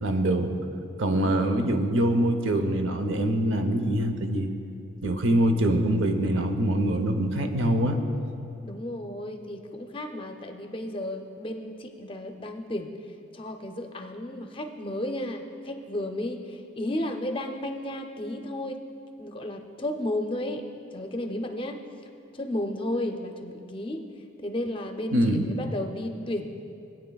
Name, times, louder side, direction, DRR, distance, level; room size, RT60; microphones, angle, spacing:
voice 1, 0.0-0.5 1.0-4.5 5.0-8.0 25.1-25.5, right 1 dB, 75° right, 6 dB, 0.7 m, -24 dB
voice 2, 1.2-1.6 8.6-12.9 13.3-18.8 19.2-20.6 20.9-21.8 22.3-24.0 24.4-26.7, left 1 dB, 25° left, 5 dB, 0.5 m, -33 dB
18.5 x 8.9 x 2.3 m, 2.6 s
head